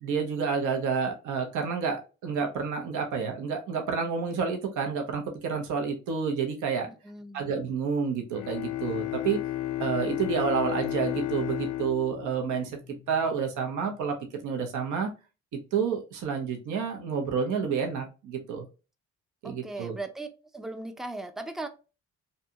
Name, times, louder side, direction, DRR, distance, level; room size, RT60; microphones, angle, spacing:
voice 1, 0.0-6.9 7.3-9.4 9.8-12.8 13.1-14.2 14.4-15.1 15.7-18.7 19.4-20.0, right 6 dB, 80° right, 0.7 m, -29 dB
voice 2, 6.9-7.5 19.4-20.3 20.5-21.7, right 2 dB, ahead, 0.3 m, -38 dB
Bowed string instrument, 8.3-13.3, left 14 dB, 80° left, 0.5 m, -33 dB
2.6 x 2.2 x 2.7 m
cardioid pair, 90°, 30 cm